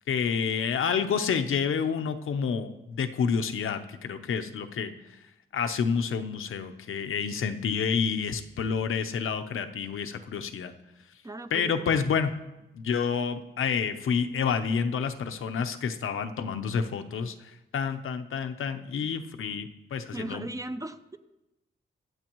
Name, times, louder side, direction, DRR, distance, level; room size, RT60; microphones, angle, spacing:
voice 1, 0.1-4.9 5.5-10.7 11.5-12.3 12.7-20.5, left 6 dB, 85° left, 8 dB, 0.8 m, -29 dB
voice 2, 11.2-12.0 20.1-21.2, right 2 dB, 15° right, 10 dB, 0.5 m, -37 dB
23.5 x 8.2 x 3.1 m, 0.98 s
wide cardioid pair, 145°, 21 cm